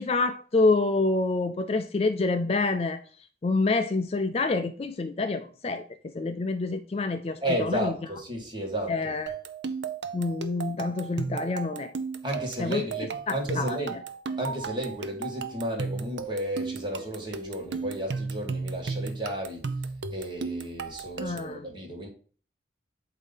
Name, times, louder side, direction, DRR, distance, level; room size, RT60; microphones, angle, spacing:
voice 1, 0.0-3.0 3.4-5.9 6.1-7.9 8.9-9.3 10.1-11.9 12.6-12.8 13.3-13.8 21.2-21.6, left 3 dB, 35° left, 0.4 m, -27 dB
voice 2, 7.4-9.1 12.2-14.0 14.4-19.6 20.1-22.1, right 1 dB, 25° right, 1.7 m, -33 dB
sound 1, 9.3-21.6, right 4 dB, 75° right, 0.6 m, -35 dB
8.2 x 2.8 x 5.4 m
head